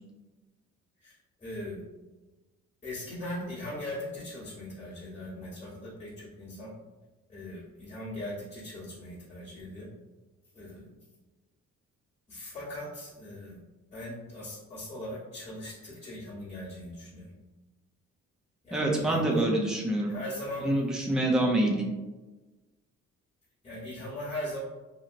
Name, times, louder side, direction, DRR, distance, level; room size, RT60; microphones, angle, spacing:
voice 1, 1.0-1.8 2.8-6.7 7.3-9.9 10.5-11.0 12.3-13.6 13.9-17.3 18.6-19.4 20.1-20.7 23.6-24.6, left 1 dB, 20° left, -11 dB, 1.1 m, -40 dB
voice 2, 18.7-20.1 20.6-21.9, right 1 dB, ahead, -2 dB, 0.5 m, -26 dB
2.9 x 2.7 x 2.5 m, 1.2 s
cardioid pair, 90°, 30 cm